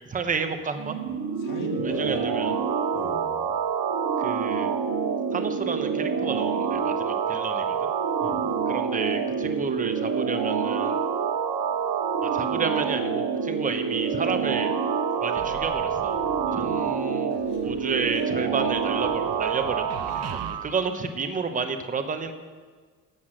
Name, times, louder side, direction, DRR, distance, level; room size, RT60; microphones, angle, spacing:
voice 1, 0.1-1.0 1.8-2.5 4.2-4.7 5.3-7.8 8.7-11.0 12.2-14.8 15.2-16.2 16.6-17.3 17.6-19.8 20.1-22.3, right 5 dB, 25° right, 7 dB, 0.9 m, -31 dB
sound 1, 0.8-20.7, right 6 dB, 80° right, 1.7 m, -27 dB
voice 2, 1.1-2.3 2.9-3.3 8.2-8.5 16.4-16.7 17.5-17.6, left 4 dB, 70° left, 2 dB, 2.2 m, -39 dB
sound 2, 15.4-17.0 17.3-20.6, right 8 dB, 50° right, 0.8 m, -42 dB
13.5 x 8.1 x 6.4 m, 1.5 s
cardioid pair, 170°, 32 cm